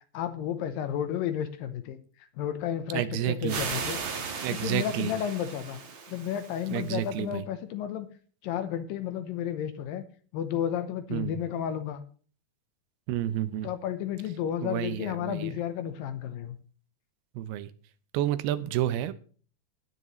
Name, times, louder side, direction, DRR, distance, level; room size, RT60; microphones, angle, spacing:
voice 1, 0.1-2.0 2.4-4.0 4.5-5.8 6.1-8.1 8.4-10.0 10.3-12.0 13.6-16.6, left 9 dB, 75° left, 10 dB, 2.4 m, -32 dB
voice 2, 2.9-3.6 4.4-5.1 6.7-7.4 11.1-11.4 13.1-13.7 14.6-15.5 17.4-17.7 18.1-19.1, right 12 dB, 90° right, 13 dB, 2.7 m, -30 dB
sound 1, 3.5-7.1, right 5 dB, 55° right, 1.3 m, -37 dB
17.0 x 9.8 x 3.1 m, 0.43 s
omnidirectional pair, 4.4 m